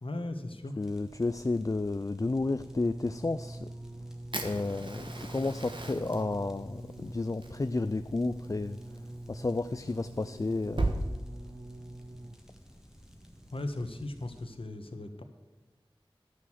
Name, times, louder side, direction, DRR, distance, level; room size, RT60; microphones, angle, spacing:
voice 1, 0.0-0.7 13.5-15.2, left 2 dB, 70° left, 6 dB, 1.2 m, -37 dB
voice 2, 0.8-3.6 4.4-8.8 9.3-11.0, left 3 dB, 35° left, 11 dB, 0.3 m, -32 dB
sound 1, 0.8-14.5, equal, 5° right, 1.6 m, -55 dB
sound 2, 2.4-12.6 13.4-13.5, right 1 dB, 30° right, 0.7 m, -45 dB
Fire, 4.3-11.0, right 2 dB, 60° right, 1.3 m, -39 dB
11.5 x 6.3 x 7.4 m, 1.3 s
wide cardioid pair, 50°, 10 cm